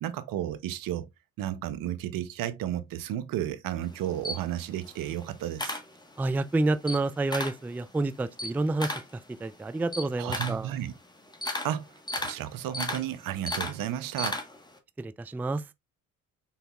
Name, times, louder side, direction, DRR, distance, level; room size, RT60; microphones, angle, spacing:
voice 1, 0.0-1.1 1.4-5.8 10.2-10.9 11.6-11.9 12.2-14.4, right 12 dB, 70° right, 0.8 m, -33 dB
Camera, 3.8-6.4 6.7-7.7 8.0-14.8, left 1 dB, 10° left, 1.3 m, -35 dB
voice 2, 6.2-10.7 15.0-15.6, right 2 dB, 5° right, 0.3 m, -29 dB
5.7 x 3.9 x 2.3 m
supercardioid pair, 60°, 35 cm